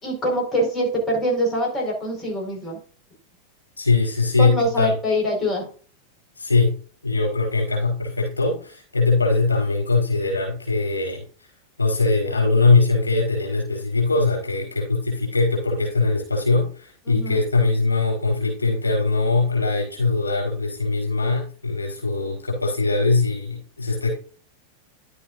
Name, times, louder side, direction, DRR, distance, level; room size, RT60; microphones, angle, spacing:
voice 1, 0.0-2.8 4.4-5.7 17.0-17.4, equal, 20° left, -1 dB, 5.1 m, -24 dB
voice 2, 3.8-4.9 6.4-6.8 7.0-11.2 11.8-24.1, left 3 dB, 80° left, -2 dB, 4.5 m, -21 dB
11.5 x 8.4 x 2.6 m, 0.39 s
figure-of-eight pair, 90°, 0 cm